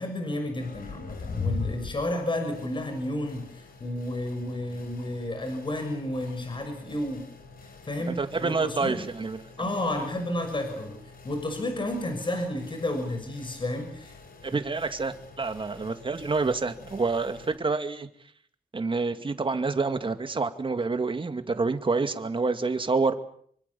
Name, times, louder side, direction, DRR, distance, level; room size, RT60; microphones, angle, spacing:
voice 1, 0.0-7.3 7.8-9.0 9.6-11.0 11.2-14.1, left 1 dB, 35° left, 6.4 m, -31 dB
sound 1, 0.6-17.6, left 4 dB, 80° left, 5.5 m, -42 dB
voice 2, 8.1-9.5 14.4-18.1 18.7-23.2, right 4 dB, 35° right, 2.3 m, -28 dB
26.5 x 24.5 x 7.1 m
wide cardioid pair, 110°, 15 cm